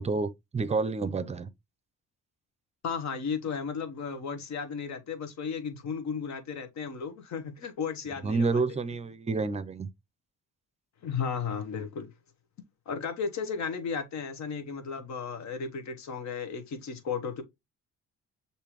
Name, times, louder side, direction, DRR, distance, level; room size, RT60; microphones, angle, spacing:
voice 1, 0.0-1.5 8.2-9.9, right 4 dB, 20° right, 0.5 m, -29 dB
voice 2, 2.8-8.6 11.0-12.1 12.9-17.4, left 6 dB, 65° left, 1.1 m, -34 dB
6.6 x 2.7 x 2.9 m
cardioid pair, 90°, 30 cm